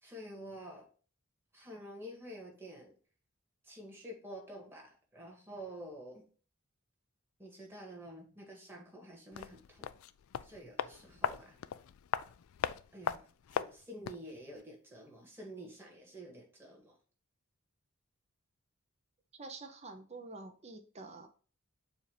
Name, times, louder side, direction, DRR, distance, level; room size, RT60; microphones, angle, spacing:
voice 1, 0.0-0.9 1.5-2.9 3.6-6.2 7.4-9.9 10.4-11.6 12.9-13.3 13.5-17.0, right 1 dB, 10° right, -1 dB, 1.8 m, -49 dB
sound 1, 9.3-14.3 14.6-14.7, left 8 dB, 70° left, 0.3 m, -39 dB
voice 2, 19.3-21.3, right 3 dB, 30° right, 4 dB, 0.8 m, -48 dB
7.1 x 2.7 x 5.0 m, 0.40 s
head